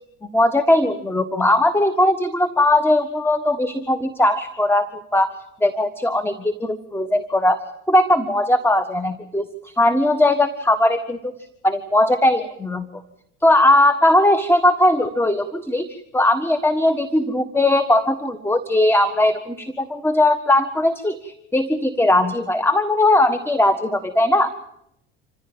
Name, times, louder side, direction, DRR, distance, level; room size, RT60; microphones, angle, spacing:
voice 1, 0.3-5.3 5.6-7.6 7.9-11.3 11.6-12.9 13.4-24.5, left 1 dB, 5° left, 11 dB, 1.5 m, -19 dB
26.5 x 15.5 x 8.9 m, 0.81 s
hypercardioid pair, 70°, 34 cm